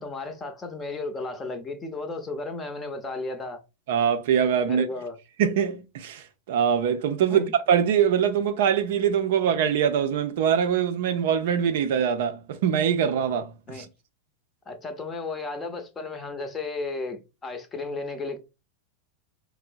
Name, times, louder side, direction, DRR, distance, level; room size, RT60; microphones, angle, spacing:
voice 1, 0.0-3.6 4.6-5.2 7.3-7.5 13.7-13.9 14.7-18.4, left 3 dB, 20° left, 0.7 m, -34 dB
voice 2, 3.9-4.8 5.4-13.8, right 8 dB, 55° right, 0.4 m, -23 dB
4.3 x 2.0 x 2.5 m
figure-of-eight pair, 90°, 0 cm